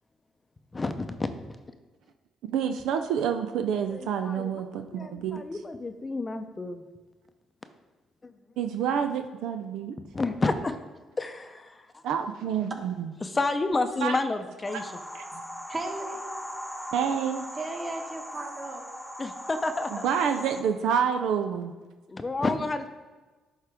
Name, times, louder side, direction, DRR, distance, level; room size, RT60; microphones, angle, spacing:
voice 1, 0.7-1.3 3.9-4.5 4.9-6.8 10.1-10.8 11.2-11.8 13.2-14.9 19.2-20.0 22.1-22.9, left 3 dB, 30° left, 9 dB, 0.6 m, -30 dB
voice 2, 2.4-5.4 8.6-10.0 12.0-13.1 14.0-14.2 14.7-14.8 16.9-17.5 19.9-21.7, right 7 dB, 75° right, 6 dB, 0.4 m, -28 dB
sound 1, 14.6-20.6, equal, 5° left, 1.0 m, -39 dB
voice 3, 15.7-16.3 17.6-18.9, right 2 dB, 40° right, 1 dB, 1.6 m, -36 dB
10.5 x 3.7 x 3.4 m, 1.3 s
hypercardioid pair, 55°, 0 cm